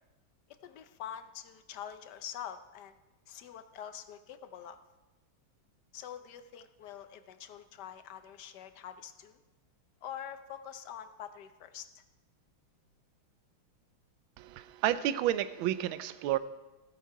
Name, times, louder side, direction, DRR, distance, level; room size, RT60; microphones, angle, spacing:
voice 1, 0.5-3.0 3.3-4.8 5.9-9.4 10.0-12.0, left 9 dB, 65° left, 10 dB, 1.2 m, -45 dB
voice 2, 14.4-16.4, right 12 dB, 80° right, 14 dB, 1.4 m, -31 dB
15.0 x 8.4 x 4.7 m, 1.1 s
omnidirectional pair, 2.2 m